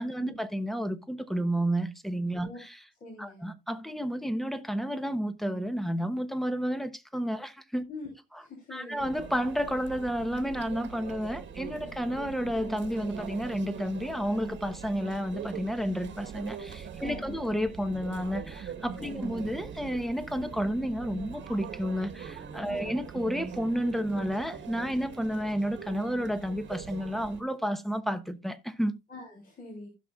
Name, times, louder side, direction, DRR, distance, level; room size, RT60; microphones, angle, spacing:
voice 1, 0.0-2.8 3.2-7.8 8.7-28.9, equal, ahead, 1.0 m, -31 dB
voice 2, 3.0-3.5 7.9-9.1 17.0-17.4 19.0-19.4 22.7-22.9 29.1-29.9, left 2 dB, 45° left, 3.5 m, -44 dB
Conversation / Chatter / Crowd, 9.0-27.4, right 7 dB, 65° right, 1.4 m, -42 dB
16.0 x 6.1 x 2.4 m
cardioid pair, 90°, 20 cm